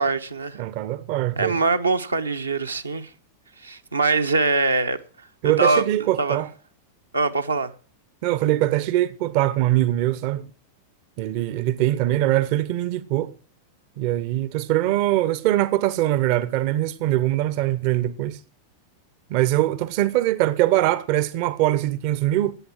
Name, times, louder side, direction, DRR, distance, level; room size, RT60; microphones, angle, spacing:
voice 1, 0.0-0.6 1.4-3.1 3.6-5.0 5.6-5.8 6.2-6.4 7.1-7.7, right 3 dB, 80° right, 1.0 m, -22 dB
voice 2, 0.6-1.6 5.4-6.5 8.2-10.4 11.2-13.3 14.0-18.4 19.3-22.6, right 14 dB, 45° right, 0.7 m, -22 dB
14.0 x 8.6 x 7.5 m
figure-of-eight pair, 90°, 0 cm